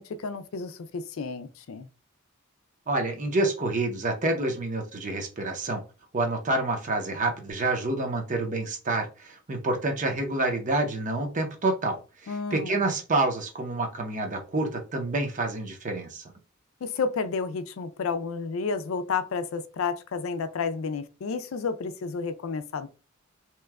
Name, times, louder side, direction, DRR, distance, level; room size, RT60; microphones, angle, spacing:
voice 1, 0.0-1.9 12.3-12.8 16.8-22.9, left 5 dB, 75° left, 0.4 m, -31 dB
voice 2, 2.9-5.8 6.1-16.3, right 2 dB, 40° right, 0.7 m, -28 dB
3.0 x 2.2 x 3.4 m
head